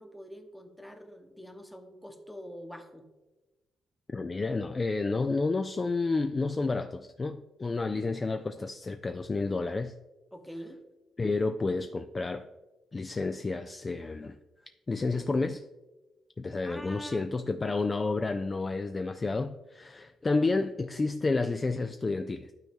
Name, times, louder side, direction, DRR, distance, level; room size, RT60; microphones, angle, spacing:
voice 1, 0.0-3.0 10.3-10.8 16.7-17.8, equal, 5° left, 5 dB, 1.0 m, -45 dB
voice 2, 4.1-9.9 11.2-12.5 12.9-14.4 14.9-15.7 16.4-22.5, left 3 dB, 25° left, 9 dB, 0.3 m, -30 dB
11.5 x 4.1 x 3.5 m, 1.1 s
cardioid pair, 90°, 0 cm